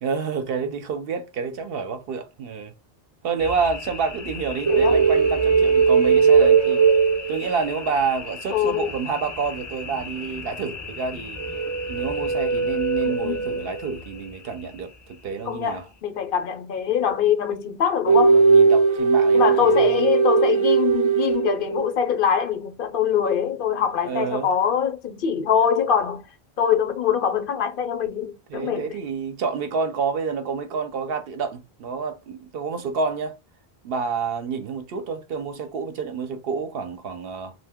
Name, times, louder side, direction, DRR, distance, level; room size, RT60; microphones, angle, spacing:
voice 1, 0.0-2.7 3.2-6.9 7.3-11.4 11.9-15.8 18.3-20.1 24.0-24.5 28.5-33.3 33.8-37.5, right 5 dB, 70° right, 0.8 m, -28 dB
sound 1, 3.4-16.0, left 4 dB, 25° left, 0.4 m, -38 dB
voice 2, 4.7-5.0 8.5-8.9 13.0-13.7 15.4-18.4 19.3-26.2 26.6-28.9, left 8 dB, 65° left, 0.7 m, -23 dB
sound 2, 4.7-7.8 11.4-14.0 18.1-21.9, right 5 dB, 40° right, 0.5 m, -19 dB
2.7 x 2.1 x 3.5 m
omnidirectional pair, 1.0 m